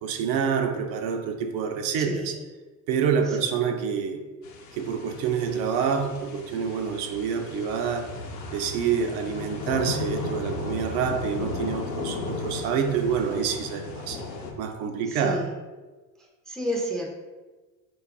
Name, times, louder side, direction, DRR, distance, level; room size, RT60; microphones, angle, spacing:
voice 1, 0.0-2.4 2.9-4.2 4.7-8.1 8.5-14.2 14.6-15.4, right 6 dB, 60° right, 5 dB, 0.7 m, -27 dB
voice 2, 2.0-2.3 3.3-3.4 15.1-15.5 16.5-17.1, equal, ahead, -1 dB, 0.5 m, -30 dB
sound 1, 4.4-14.5, left 3 dB, 85° left, 0.8 m, -35 dB
3.9 x 2.5 x 3.5 m, 1.2 s
hypercardioid pair, 80°, 50 cm